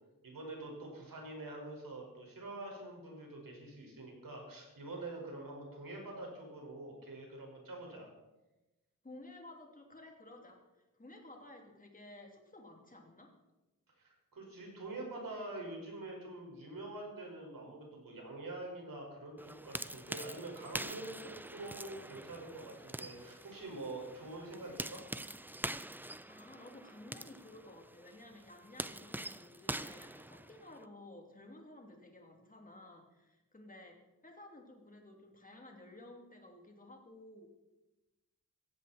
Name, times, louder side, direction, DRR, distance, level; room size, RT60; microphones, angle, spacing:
voice 1, 0.2-8.1 14.0-25.0, right 2 dB, 90° right, 0 dB, 5.2 m, -46 dB
voice 2, 9.0-10.6 11.0-13.3 26.3-37.5, left 1 dB, 25° left, 1 dB, 2.9 m, -54 dB
sound 1, 19.4-30.8, right 1 dB, 5° right, 0.4 m, -45 dB
16.5 x 15.5 x 4.3 m, 1.0 s
wide cardioid pair, 130°, 33 cm